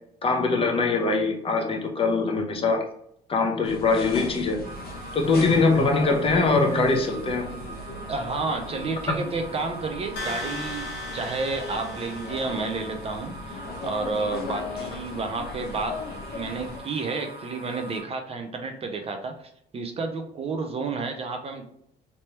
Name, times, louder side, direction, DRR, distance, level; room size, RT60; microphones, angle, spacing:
voice 1, 0.2-2.9 3.3-4.6 5.1-7.5 9.1-9.2, left 3 dB, 35° left, 2 dB, 0.8 m, -22 dB
sound 1, 3.6-16.8, left 3 dB, 65° left, 1.0 m, -38 dB
sound 2, 4.6-18.0, right 1 dB, 70° right, 1.1 m, -43 dB
voice 2, 8.1-16.0 16.3-19.3 19.7-21.6, right 3 dB, 35° right, 5 dB, 0.6 m, -31 dB
sound 3, 10.2-13.1, left 1 dB, 90° left, 1.0 m, -37 dB
3.3 x 2.9 x 2.9 m, 0.71 s
cardioid pair, 110°, 17 cm